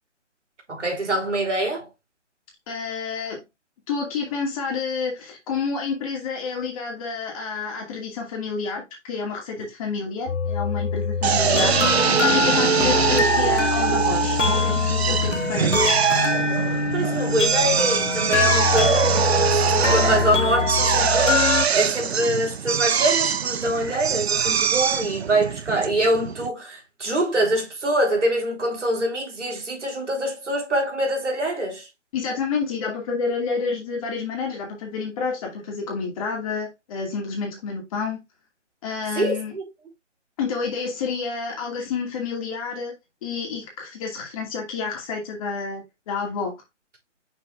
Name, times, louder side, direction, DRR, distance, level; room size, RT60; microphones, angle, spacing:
voice 1, 0.7-1.9 11.5-11.7 16.9-31.9 39.2-39.6, right 1 dB, 70° right, 3.7 m, -24 dB
voice 2, 2.7-3.4 3.9-11.9 12.2-15.9 32.1-38.2 38.8-39.5 40.4-42.9 43.2-46.5, left 5 dB, 30° left, 2.2 m, -29 dB
sound 1, 10.3-21.7, left 5 dB, 70° left, 1.4 m, -24 dB
Drill, 11.2-26.5, right 7 dB, 55° right, 0.7 m, -23 dB
6.3 x 6.2 x 2.4 m
figure-of-eight pair, 145°, 37 cm